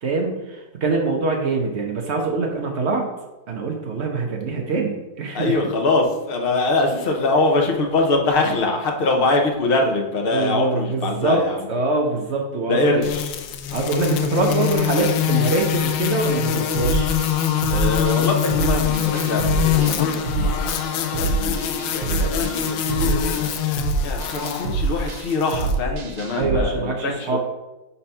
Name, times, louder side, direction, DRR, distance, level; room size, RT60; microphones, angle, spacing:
voice 1, 0.0-3.1 3.5-5.6 10.3-11.4 11.7-13.0 13.7-17.1 22.9-23.2 26.4-27.4, right 3 dB, 55° right, 1 dB, 0.7 m, -24 dB
voice 2, 5.3-11.6 12.7-13.3 17.7-23.6 24.0-27.4, left 2 dB, 55° left, 2 dB, 0.6 m, -23 dB
sound 1, 13.0-25.7, left 10 dB, 80° left, 1.2 m, -24 dB
sound 2, 16.7-26.6, right 3 dB, 90° right, 1.6 m, -26 dB
4.4 x 4.2 x 5.4 m, 1.0 s
omnidirectional pair, 2.1 m